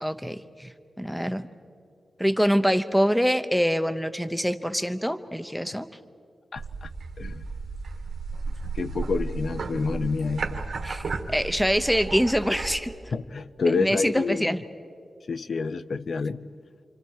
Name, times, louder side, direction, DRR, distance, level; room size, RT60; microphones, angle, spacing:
voice 1, 0.0-1.5 2.2-5.9 10.8-11.0 11.3-12.9 13.8-14.6, equal, ahead, 11 dB, 0.8 m, -25 dB
voice 2, 6.5-6.9 7.2-7.4 8.7-10.6 13.1-14.6 15.3-16.4, left 4 dB, 60° left, 15 dB, 0.6 m, -28 dB
sound 1, 6.6-12.8, right 4 dB, 75° right, 1.6 m, -33 dB
29.0 x 26.0 x 4.8 m, 2.4 s
wide cardioid pair, 105°, 0 cm